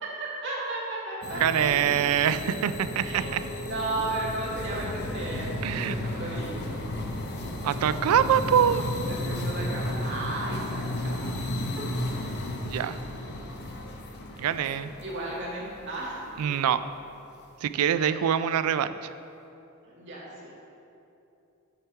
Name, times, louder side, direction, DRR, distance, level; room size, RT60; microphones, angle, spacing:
voice 1, 0.0-1.9 3.0-6.8 8.9-11.3 11.8-11.9 15.0-16.2 17.9-18.4 19.8-20.5, right 2 dB, 55° right, -5 dB, 1.9 m, -35 dB
sound 1, 1.2-16.5, left 1 dB, 50° left, 0.8 m, -34 dB
voice 2, 1.4-3.4 5.6-6.0 7.6-8.8 12.6-13.0 14.4-14.9 16.4-16.8 17.6-19.1, right 9 dB, 85° right, 13 dB, 0.3 m, -24 dB
7.9 x 5.8 x 4.5 m, 2.8 s
head